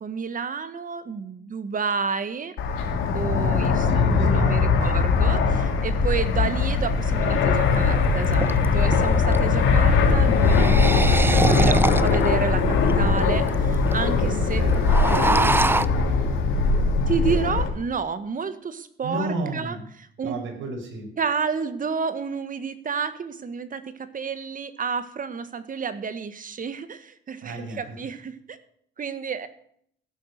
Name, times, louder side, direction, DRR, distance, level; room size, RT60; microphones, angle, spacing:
voice 1, 0.0-2.5 3.1-8.5 8.7-14.6 17.1-19.8 20.2-20.4 21.2-28.6 29.0-29.5, right 5 dB, 45° right, 11 dB, 1.7 m, -30 dB
Fixed-wing aircraft airplane, 2.6-17.7, left 4 dB, 85° left, 3.2 m, -20 dB
voice 2, 3.9-5.7 14.5-15.5 19.0-19.8 20.2-21.1 27.4-28.0, right 2 dB, 75° right, 2 dB, 5.0 m, -33 dB
sound 1, 7.6-7.7 8.2-9.4 10.3-12.3 12.9-13.0 13.2-13.3 13.5-13.9 14.2-14.4 14.7-15.9, right 2 dB, 10° right, 0.6 m, -24 dB
15.5 x 9.4 x 6.7 m, 0.65 s
cardioid pair, 90°, 20 cm